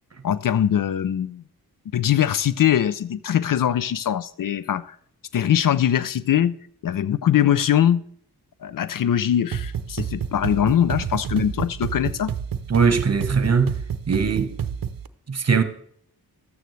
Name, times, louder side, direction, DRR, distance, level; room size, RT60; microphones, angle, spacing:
voice 1, 0.2-1.4 1.9-5.0 5.3-6.6 6.8-8.0 8.6-12.3, left 10 dB, 60° left, 0.5 m, -22 dB
sound 1, 9.5-15.1, right 8 dB, 60° right, 0.7 m, -29 dB
voice 2, 12.7-13.7 14.1-14.6 15.3-15.6, right 5 dB, 40° right, 1.1 m, -20 dB
12.5 x 9.0 x 3.2 m
cardioid pair, 40°, 38 cm